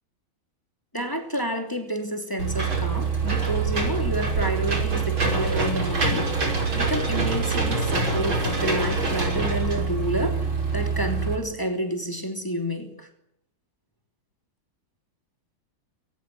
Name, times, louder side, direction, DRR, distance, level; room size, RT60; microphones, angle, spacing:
voice 1, 0.9-13.1, equal, 10° left, 3.0 m, -29 dB
Engine / Mechanisms, 2.4-11.4, right 4 dB, 80° right, 6.1 m, -25 dB
22.5 x 19.5 x 9.2 m
omnidirectional pair, 2.2 m